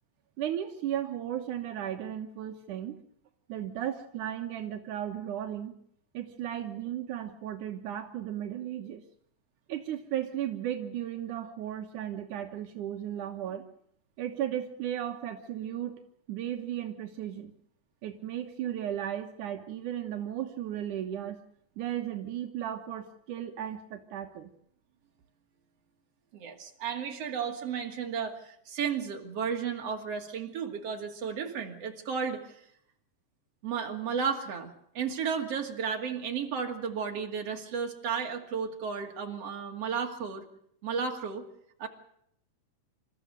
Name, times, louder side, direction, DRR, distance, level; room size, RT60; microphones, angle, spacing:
voice 1, 0.4-2.9 3.5-5.7 6.1-9.0 9.7-13.6 14.2-16.0 16.3-17.5 18.0-21.4 21.8-24.5, right 11 dB, 80° right, 5 dB, 2.7 m, -35 dB
voice 2, 26.3-32.6 33.6-40.4 40.8-41.4 41.8-41.9, right 6 dB, 55° right, 3 dB, 3.4 m, -33 dB
28.0 x 14.0 x 8.0 m, 0.70 s
omnidirectional pair, 3.6 m